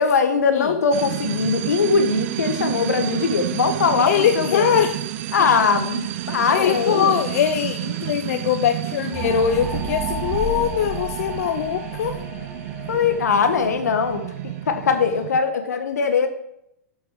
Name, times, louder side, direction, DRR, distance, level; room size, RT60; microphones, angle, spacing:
voice 1, 0.0-4.7 5.3-7.1 12.9-16.3, left 5 dB, 85° left, 8 dB, 1.4 m, -21 dB
sound 1, 0.9-15.4, right 13 dB, 55° right, 0.7 m, -30 dB
voice 2, 4.0-4.9 6.5-12.2, left 9 dB, 60° left, 7 dB, 0.7 m, -22 dB
sound 2, 9.1-14.6, right 1 dB, 20° right, 2.1 m, -32 dB
7.1 x 6.1 x 6.8 m, 0.79 s
hypercardioid pair, 125°, 9 cm